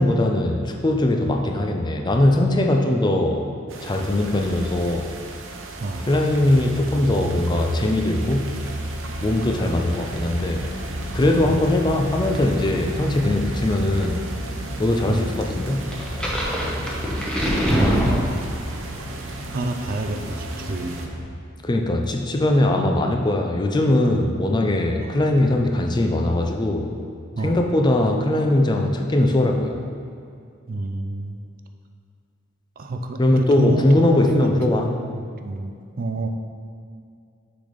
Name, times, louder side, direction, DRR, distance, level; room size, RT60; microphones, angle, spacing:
voice 1, 0.0-3.5 3.8-5.1 6.1-8.6 9.2-10.7 11.1-14.2 14.8-15.9 21.6-26.9 27.4-29.8 33.2-34.9, left 1 dB, 20° left, 3 dB, 0.4 m, -20 dB
sound 1, 3.7-21.1, right 3 dB, 80° right, 0.7 m, -38 dB
sound 2, 5.9-21.2, equal, 65° right, 1.3 m, -32 dB
sound 3, 15.9-18.8, equal, 5° left, 1.0 m, -23 dB
voice 2, 17.6-18.4 19.5-21.0 25.0-25.2 27.4-27.6 30.7-31.4 32.8-36.3, right 2 dB, 45° right, 5 dB, 0.4 m, -28 dB
6.8 x 4.0 x 5.0 m, 2.4 s
head